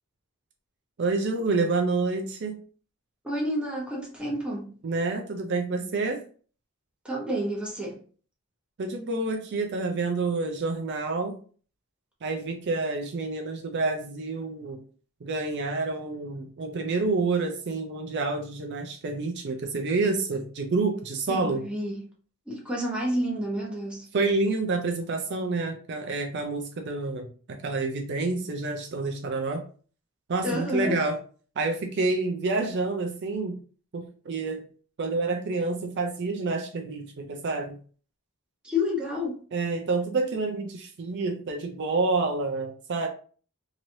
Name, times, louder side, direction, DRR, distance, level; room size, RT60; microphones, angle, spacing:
voice 1, 1.0-2.6 4.8-6.2 8.8-11.4 12.2-14.8 15.2-21.6 24.1-29.6 30.3-31.2 31.6-33.6 33.9-34.6 35.0-37.8 39.5-43.1, right 3 dB, 50° right, 0.4 m, -28 dB
voice 2, 3.2-4.8 7.0-8.0 21.3-22.0 22.5-24.1 30.4-31.0 38.6-39.4, left 1 dB, 5° right, 0.8 m, -30 dB
3.0 x 2.9 x 2.6 m
head